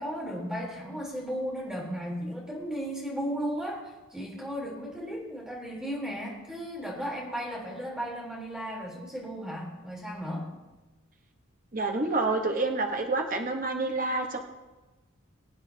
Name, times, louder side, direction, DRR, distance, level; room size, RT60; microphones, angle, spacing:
voice 1, 0.0-10.5, equal, 5° right, -4 dB, 3.4 m, -35 dB
voice 2, 11.7-14.4, right 3 dB, 40° right, 3 dB, 1.0 m, -28 dB
22.5 x 8.8 x 2.8 m, 1.2 s
head